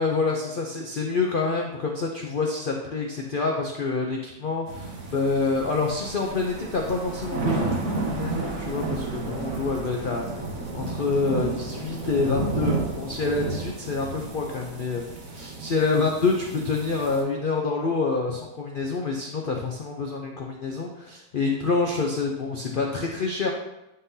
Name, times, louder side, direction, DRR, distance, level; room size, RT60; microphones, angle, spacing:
voice 1, 0.0-10.2 10.7-15.0 15.3-23.5, left 4 dB, 75° left, 0 dB, 0.4 m, -27 dB
sound 1, 4.7-17.2, right 3 dB, 55° right, 1.3 m, -32 dB
9.8 x 3.7 x 2.7 m, 0.92 s
omnidirectional pair, 1.8 m